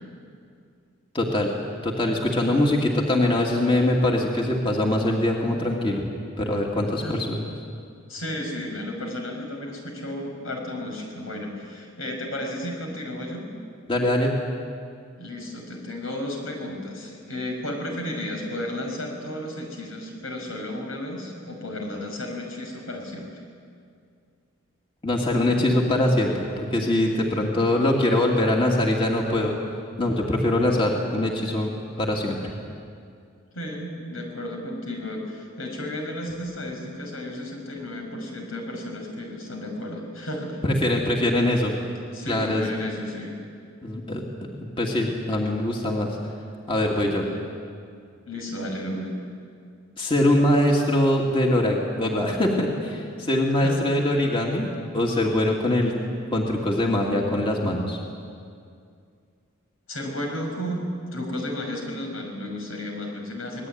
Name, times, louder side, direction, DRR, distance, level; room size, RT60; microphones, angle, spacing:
voice 1, 1.1-1.5 1.8-6.0 6.4-7.4 13.9-14.3 25.0-29.6 30.0-31.7 32.0-32.5 40.6-41.7 42.3-42.6 43.8-44.2 44.8-46.2 46.7-47.2 50.0-55.9 56.3-58.0, left 1 dB, 25° left, -1 dB, 2.6 m, -23 dB
voice 2, 8.1-13.5 15.2-23.4 33.5-40.6 42.1-43.4 47.2-47.4 48.3-49.1 53.6-53.9 59.9-63.7, left 1 dB, 85° left, 1 dB, 6.6 m, -33 dB
25.5 x 20.0 x 9.6 m, 2.3 s
head